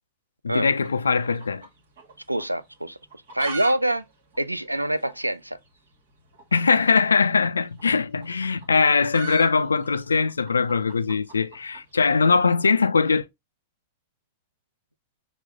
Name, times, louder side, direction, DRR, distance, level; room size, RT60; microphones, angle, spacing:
voice 1, 0.4-1.6 6.5-13.3, left 5 dB, 75° left, 0.3 m, -21 dB
sound 1, 0.8-2.1 2.4-2.5 3.0-3.8 4.0-4.1 4.3-4.4 5.0-5.1 6.3-6.5 7.6-11.9, right 5 dB, 60° right, 1.3 m, -38 dB
voice 2, 2.3-3.0 3.3-4.0 4.4-5.6, right 1 dB, 85° right, 0.3 m, -25 dB
6.0 x 2.2 x 3.6 m
figure-of-eight pair, 90°, 0 cm